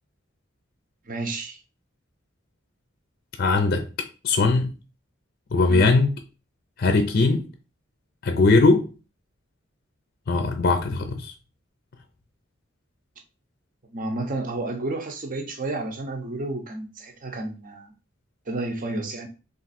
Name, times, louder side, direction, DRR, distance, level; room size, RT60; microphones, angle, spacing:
voice 1, 1.0-1.6 5.7-5.9 13.9-17.9 18.5-19.3, right 2 dB, 40° right, 0.7 m, -31 dB
voice 2, 3.4-3.9 4.2-4.7 5.5-6.1 6.8-7.4 8.2-8.9 10.3-11.3, left 3 dB, 50° left, 0.5 m, -20 dB
3.6 x 2.6 x 4.1 m
head